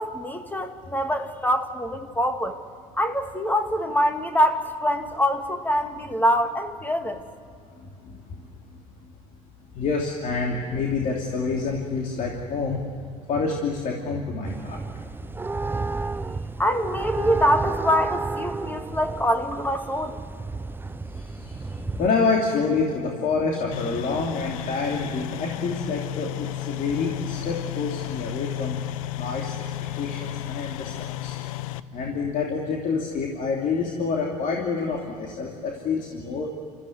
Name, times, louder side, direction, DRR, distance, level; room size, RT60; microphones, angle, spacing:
voice 1, 0.0-2.6 3.0-7.3 16.6-20.2, equal, 10° left, 7 dB, 2.0 m, -24 dB
voice 2, 9.7-12.9 13.3-14.8 21.1-28.8 29.1-29.5 29.9-30.9 31.2-31.4 31.9-36.5, left 4 dB, 50° left, 0 dB, 3.0 m, -27 dB
sound 1, 14.4-22.1, right 3 dB, 10° right, 0.6 m, -32 dB
sound 2, 23.7-31.8, left 13 dB, 75° left, 0.8 m, -33 dB
29.0 x 14.5 x 9.6 m, 2.5 s
hypercardioid pair, 65°, 18 cm